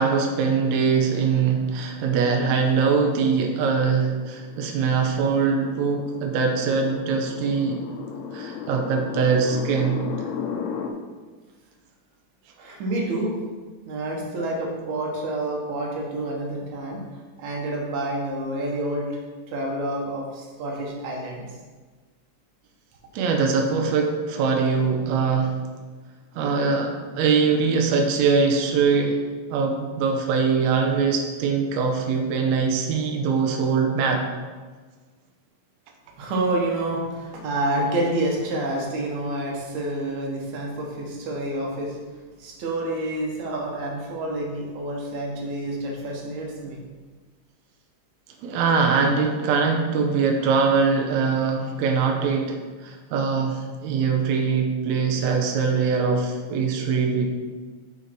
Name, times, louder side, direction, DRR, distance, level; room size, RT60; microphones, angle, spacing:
voice 1, 0.0-7.8 8.3-10.3 23.1-25.6 26.3-29.2 29.5-34.3 48.4-57.3, right 5 dB, 80° right, 2 dB, 1.6 m, -22 dB
sound 1, 3.2-10.9, left 7 dB, 90° left, 2.4 m, -35 dB
voice 2, 12.6-13.3 13.9-17.0 17.4-19.2 19.5-21.5 36.2-42.0 42.4-46.9, right 1 dB, 60° right, -1 dB, 2.4 m, -28 dB
6.6 x 6.3 x 4.6 m, 1.4 s
omnidirectional pair, 4.2 m